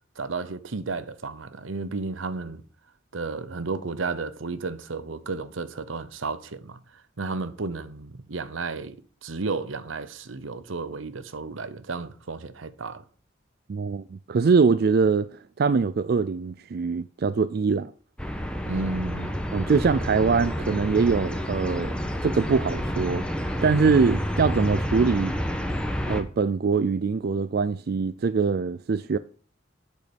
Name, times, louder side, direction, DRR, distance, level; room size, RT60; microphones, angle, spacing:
voice 1, 0.2-2.6 3.1-6.8 7.2-9.0 9.2-13.0 18.7-19.4, right 3 dB, 85° right, 0.9 m, -33 dB
voice 2, 13.7-17.9 19.5-21.9 22.2-23.2 23.6-25.3 26.1-29.2, right 5 dB, 55° right, 0.4 m, -23 dB
sound 1, 18.2-26.2, equal, 5° left, 1.1 m, -29 dB
8.2 x 6.6 x 6.9 m
head